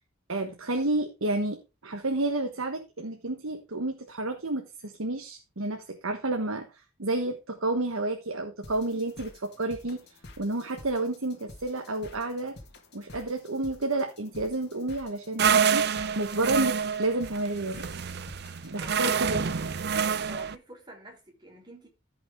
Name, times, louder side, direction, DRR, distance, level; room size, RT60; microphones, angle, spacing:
voice 1, 0.3-10.0 10.4-12.6 12.9-15.9 16.1-17.9 18.6-19.4, right 2 dB, 80° right, 1.3 m, -30 dB
sound 1, 8.6-20.0, left 2 dB, 50° left, 1.9 m, -50 dB
sound 2, 15.4-20.6, right 6 dB, 50° right, 0.5 m, -27 dB
voice 2, 18.7-19.5 20.2-21.9, right 1 dB, 20° right, 3.3 m, -47 dB
14.0 x 5.8 x 3.6 m
head